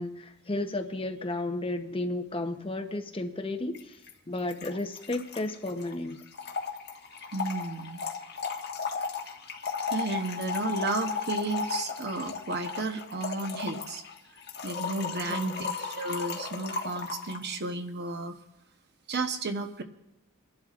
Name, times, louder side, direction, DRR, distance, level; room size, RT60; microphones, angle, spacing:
voice 1, 0.0-4.0 4.3-6.2 15.3-15.7, left 2 dB, 25° left, 0.8 m, -33 dB
Trickle dribble / Fill (with liquid), 3.7-3.8 4.1-4.2 4.4-17.5, left 5 dB, 50° left, 1.5 m, -35 dB
voice 2, 7.3-8.0 9.9-14.0 14.6-18.4 19.1-19.8, right 3 dB, 50° right, 1.0 m, -33 dB
29.5 x 11.5 x 2.5 m
head